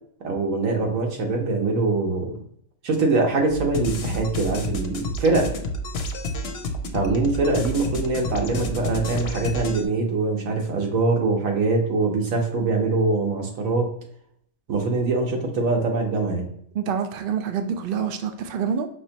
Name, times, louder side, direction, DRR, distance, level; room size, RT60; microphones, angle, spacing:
voice 1, 0.2-2.3 2.8-5.5 6.9-13.9 14.7-16.5, right 3 dB, 80° right, 2 dB, 1.4 m, -23 dB
sound 1, 3.5-9.9, left 1 dB, 60° left, 0.8 m, -30 dB
voice 2, 16.7-18.9, right 7 dB, 60° right, 7 dB, 0.6 m, -26 dB
5.5 x 3.1 x 2.8 m, 0.67 s
omnidirectional pair, 1.4 m